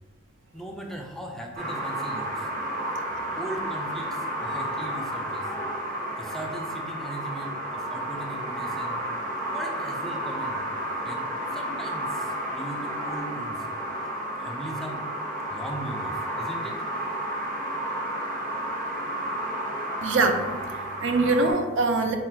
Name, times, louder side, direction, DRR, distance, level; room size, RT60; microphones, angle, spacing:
voice 1, 0.5-2.5 3.4-5.8 6.2-9.0 9.5-10.6 11.0-13.7 14.4-15.1 15.5-16.9, right 1 dB, ahead, 1 dB, 0.4 m, -39 dB
sound 1, 1.5-21.5, right 1 dB, 45° right, 0.9 m, -32 dB
voice 2, 20.0-22.2, right 3 dB, 65° right, 5 dB, 0.5 m, -24 dB
3.8 x 2.5 x 4.3 m, 1.2 s
head